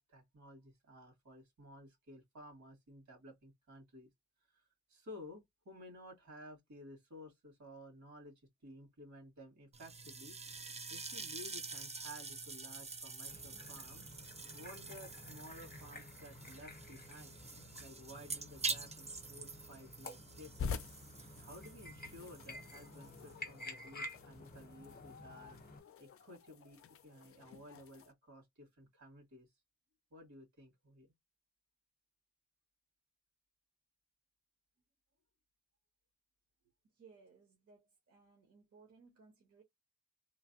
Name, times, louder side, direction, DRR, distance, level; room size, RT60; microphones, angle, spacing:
voice 1, 0.0-4.1 4.5-8.3 8.6-10.4 10.9-14.3 14.5-17.4 17.8-20.8 21.4-25.6 26.0-26.8 27.0-29.5 30.1-31.1, left 1 dB, 75° right, 1.9 m, -55 dB
sound 1, 9.7-24.0, right 4 dB, 25° right, 0.4 m, -47 dB
sound 2, 13.3-25.8, left 1 dB, 30° left, 0.8 m, -52 dB
sound 3, 20.6-28.1, left 5 dB, 50° left, 0.4 m, -48 dB
voice 2, 36.9-39.6, right 5 dB, 55° right, 1.0 m, -63 dB
3.1 x 2.2 x 2.6 m
wide cardioid pair, 155°, 29 cm